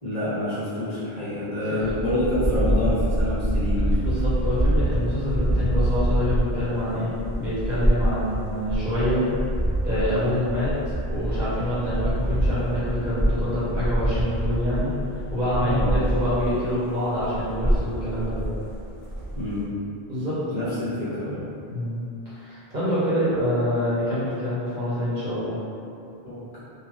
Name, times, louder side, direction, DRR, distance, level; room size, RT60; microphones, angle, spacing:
voice 1, 0.0-3.9 15.6-15.9 19.3-19.6 20.5-21.4 26.2-26.6, left 1 dB, 40° left, -14 dB, 1.3 m, -27 dB
voice 2, 1.6-2.0 4.0-9.2 9.8-14.9 15.3-18.4 20.1-20.4 21.7-25.6, left 1 dB, 50° right, -12 dB, 0.9 m, -26 dB
sound 1, 1.8-16.8 17.2-19.6, right 1 dB, ahead, 0.6 m, -25 dB
3.0 x 2.5 x 2.4 m, 2.6 s
omnidirectional pair, 1.0 m